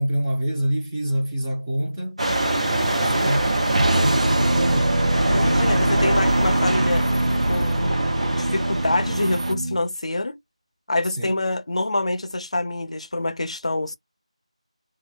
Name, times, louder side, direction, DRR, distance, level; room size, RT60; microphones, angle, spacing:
voice 1, 0.0-2.2 2.6-5.0 11.1-11.4, equal, 15° right, 0.5 m, -27 dB
sound 1, 2.2-9.5, right 1 dB, 70° right, 0.8 m, -24 dB
sound 2, 3.7-9.8, right 1 dB, 90° right, 0.4 m, -23 dB
voice 2, 5.3-7.1 7.5-10.4 10.9-14.0, left 2 dB, 65° left, 0.4 m, -26 dB
2.2 x 2.0 x 3.2 m
figure-of-eight pair, 170°, 4 cm